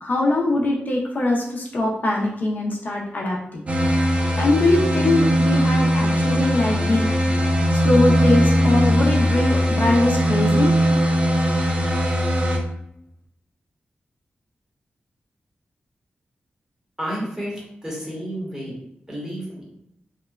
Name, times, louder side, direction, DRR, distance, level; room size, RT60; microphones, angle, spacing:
voice 1, 0.0-3.6 4.4-7.1 7.7-10.7, left 2 dB, 55° left, -2 dB, 0.5 m, -22 dB
sound 1, 3.7-12.6, equal, 35° right, 0.4 m, -19 dB
voice 2, 17.0-18.7 19.1-19.7, equal, 15° right, -5 dB, 1.0 m, -31 dB
2.8 x 2.1 x 2.3 m, 0.75 s
wide cardioid pair, 110°, 4 cm